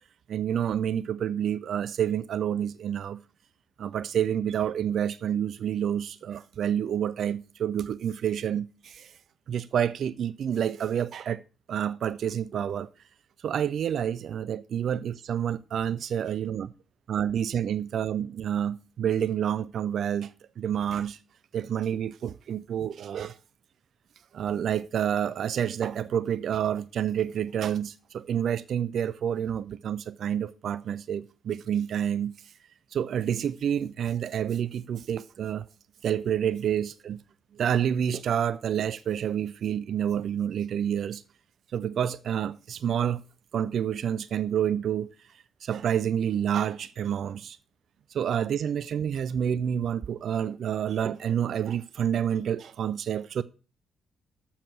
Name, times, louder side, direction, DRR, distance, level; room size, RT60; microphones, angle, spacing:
voice 1, 0.3-3.2 3.8-9.1 9.5-11.4 11.7-12.9 13.4-16.7 17.1-21.2 21.5-23.4 24.3-32.3 32.9-35.6 36.0-37.2 37.5-41.2 41.7-43.2 43.5-45.1 45.6-47.6 48.1-53.4, right 9 dB, 60° right, 0.3 m, -28 dB
7.1 x 7.1 x 6.2 m
hypercardioid pair, 40°, 0 cm